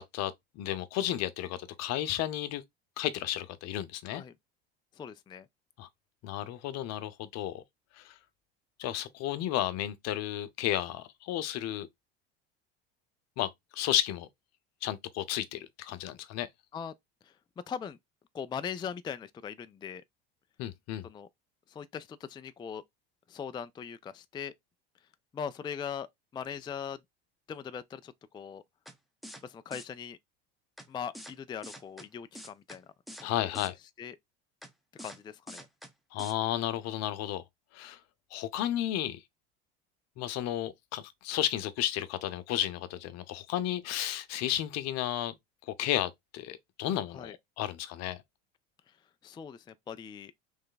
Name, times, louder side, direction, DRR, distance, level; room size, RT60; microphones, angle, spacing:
voice 1, 0.0-2.6 3.0-4.2 5.8-5.9 6.2-7.6 7.9-8.2 8.8-11.9 13.4-14.3 14.8-16.5 20.6-21.1 33.2-33.8 36.1-37.4 37.7-38.0 38.3-39.2 40.2-45.4 45.7-48.2, left 12 dB, 60° left, 0.8 m, -33 dB
voice 2, 4.9-5.5 16.7-16.9 17.2-17.3 17.7-18.0 18.3-20.0 21.0-21.3 21.7-22.8 23.3-24.5 25.3-26.1 26.3-27.0 27.5-28.6 29.4-30.2 30.9-32.9 33.2-33.7 34.0-34.2 35.0-35.7 47.1-47.3 49.2-50.3, left 7 dB, 15° left, 0.3 m, -40 dB
sound 1, 28.9-29.0 29.2-29.4 29.7-29.8 30.8-30.9 31.1-31.3 31.6-32.1 32.3-32.8 33.1-33.3 33.5-33.7 34.6-34.7 35.0-35.2 35.5-35.9 36.2-36.3, equal, ahead, 0.9 m, -45 dB
3.4 x 3.2 x 3.9 m
supercardioid pair, 90°, 29 cm